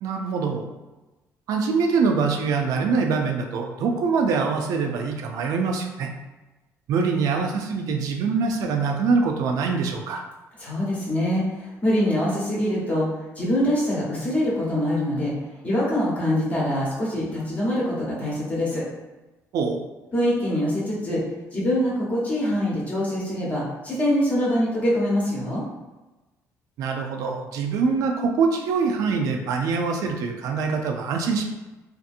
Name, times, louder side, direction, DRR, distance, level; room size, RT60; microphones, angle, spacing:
voice 1, 0.0-0.7 1.5-6.1 6.9-10.2 19.5-19.8 26.8-31.5, right 5 dB, 70° right, 3 dB, 0.4 m, -24 dB
voice 2, 10.6-15.3 15.6-18.9 20.1-21.2 21.5-25.6, equal, 25° left, -6 dB, 0.9 m, -24 dB
2.7 x 2.5 x 2.5 m, 1.1 s
cardioid pair, 160°, 6 cm